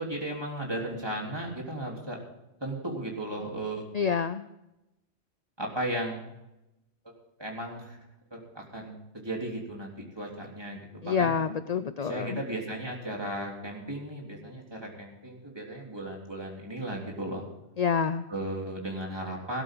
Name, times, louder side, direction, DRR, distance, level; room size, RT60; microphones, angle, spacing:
voice 1, 0.0-2.2 2.6-3.8 5.6-6.2 7.4-8.0 8.3-11.4 12.0-17.4 18.3-19.6, right 1 dB, 20° right, -1 dB, 3.6 m, -35 dB
voice 2, 3.9-4.5 11.0-12.4 17.8-18.2, left 6 dB, 45° left, 11 dB, 0.6 m, -27 dB
17.0 x 13.0 x 3.9 m, 0.91 s
omnidirectional pair, 1.1 m